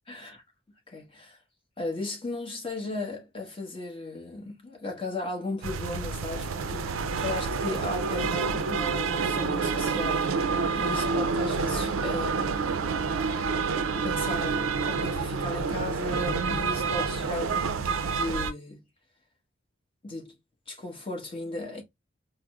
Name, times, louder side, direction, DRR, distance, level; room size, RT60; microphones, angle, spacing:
voice 1, 0.1-0.4 0.9-1.4 1.8-10.3 10.8-12.7 14.0-18.8 20.0-20.3 20.7-21.8, left 2 dB, 25° left, 1.0 m, -36 dB
sound 1, 5.6-18.5, right 5 dB, 80° right, 0.4 m, -28 dB
4.6 x 2.0 x 2.3 m
head